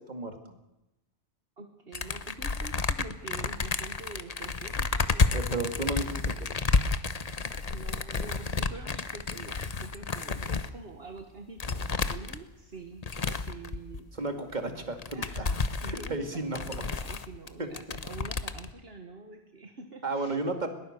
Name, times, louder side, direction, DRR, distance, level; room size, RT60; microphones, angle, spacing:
voice 1, 0.1-0.5 5.3-6.3 14.2-15.4 15.8-16.6 17.6-17.7 20.0-20.7, right 2 dB, 40° right, 6 dB, 2.5 m, -33 dB
voice 2, 1.6-5.5 7.7-14.1 15.1-20.4, right 3 dB, 60° right, 5 dB, 1.8 m, -46 dB
sound 1, 1.9-10.7 11.2-11.3 11.6-12.4 13.0-14.0 14.5-14.6 14.8-17.5 17.7-18.7, left 4 dB, 40° left, 1.0 m, -31 dB
21.5 x 19.5 x 6.7 m, 0.92 s
omnidirectional pair, 1.1 m